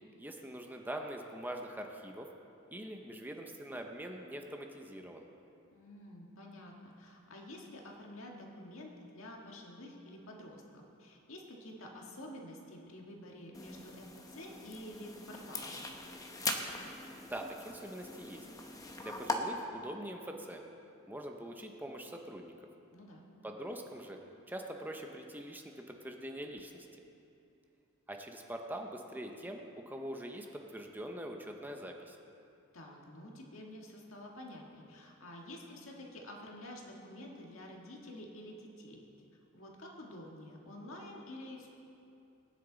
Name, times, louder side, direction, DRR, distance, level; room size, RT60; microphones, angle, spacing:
voice 1, 0.2-2.3 2.7-5.3 17.2-18.5 19.0-20.6 21.1-22.5 23.4-24.2 24.5-26.9 28.1-32.2, right 1 dB, 10° right, 2 dB, 0.8 m, -43 dB
voice 2, 5.7-15.8 22.9-23.2 32.7-39.0 39.5-41.7, left 1 dB, 70° left, -1 dB, 1.9 m, -49 dB
sound 1, 13.5-19.4, left 3 dB, 15° left, 0.9 m, -41 dB
19.0 x 10.0 x 4.0 m, 2.7 s
head